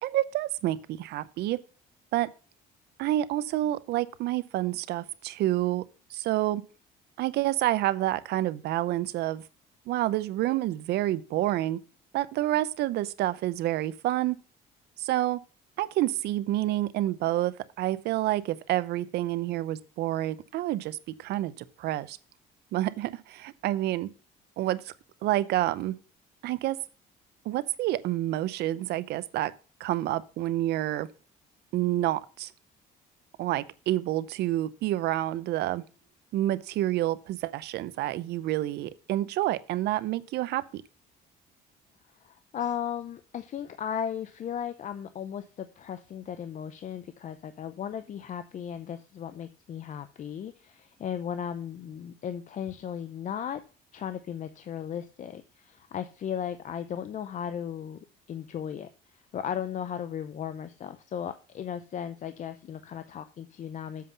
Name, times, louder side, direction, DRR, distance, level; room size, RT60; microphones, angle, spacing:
voice 1, 0.0-1.6 2.1-2.3 3.0-5.8 6.1-6.6 7.2-9.4 9.9-11.8 12.1-14.4 15.0-15.4 15.8-22.2 22.7-24.1 24.6-24.9 25.2-26.0 26.4-26.8 27.5-29.5 29.8-31.1 31.7-32.5 33.4-35.8 36.3-40.8, right 14 dB, 75° right, 0.6 m, -28 dB
voice 2, 42.2-53.6 53.9-64.1, left 9 dB, 45° left, 0.6 m, -36 dB
7.6 x 5.5 x 5.4 m
cardioid pair, 110°, 17 cm